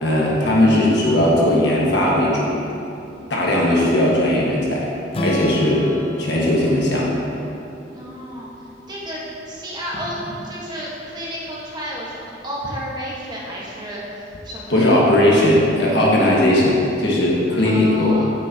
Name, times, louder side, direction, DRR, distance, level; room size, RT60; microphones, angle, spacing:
voice 1, 0.0-2.6 3.3-4.9 5.2-5.9 6.2-7.2 14.7-18.2, left 1 dB, 65° left, -4 dB, 1.4 m, -17 dB
Strum, 5.1-9.3, equal, 30° left, 0.5 m, -31 dB
voice 2, 7.9-8.5 8.9-14.0 14.4-15.0 17.6-18.3, equal, 25° right, -6 dB, 1.2 m, -31 dB
9.3 x 6.5 x 2.8 m, 2.8 s
head